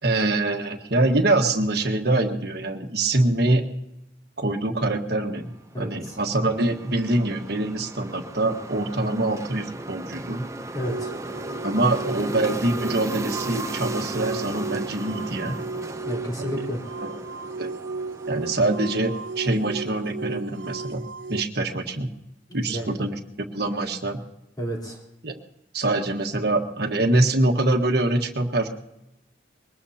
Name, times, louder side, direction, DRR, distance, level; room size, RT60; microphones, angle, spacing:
voice 1, 0.0-3.6 4.4-5.5 5.8-10.4 11.6-15.6 16.4-16.6 17.6-17.7 18.3-21.0 21.3-22.1 22.5-23.2 23.5-24.2 25.2-25.4 25.7-28.7, right 2 dB, 55° right, 3 dB, 1.5 m, -24 dB
sound 1, 5.5-19.9, right 2 dB, 15° right, 0.6 m, -37 dB
voice 2, 5.7-6.2 10.7-11.1 16.0-16.8 22.5-22.9 24.6-25.0, equal, 20° left, -3 dB, 3.8 m, -31 dB
sound 2, 10.8-21.4, right 3 dB, 80° right, 0.5 m, -34 dB
22.5 x 19.5 x 2.8 m, 0.89 s
head